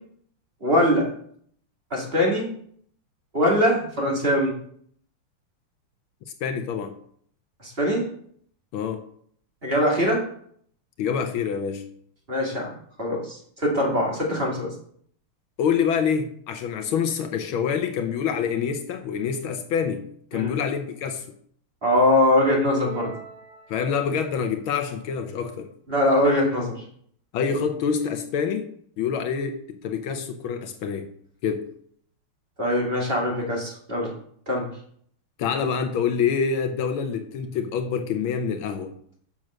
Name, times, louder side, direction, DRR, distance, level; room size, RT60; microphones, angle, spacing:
voice 1, 0.6-1.1 1.9-2.5 3.3-4.5 7.6-8.1 9.6-10.2 12.3-12.7 13.0-14.7 20.3-20.5 21.8-23.1 25.9-26.8 32.6-34.1 34.5-34.7, left 1 dB, 25° right, 2.5 m, -22 dB
voice 2, 6.4-6.9 8.7-9.0 11.0-11.8 15.6-21.3 23.7-25.7 27.3-28.7 29.0-31.1 31.4-31.7 35.4-39.0, left 6 dB, 75° left, 1.5 m, -26 dB
sound 1, 22.7-24.4, right 4 dB, 50° right, 1.6 m, -41 dB
7.7 x 6.1 x 6.2 m
omnidirectional pair, 2.4 m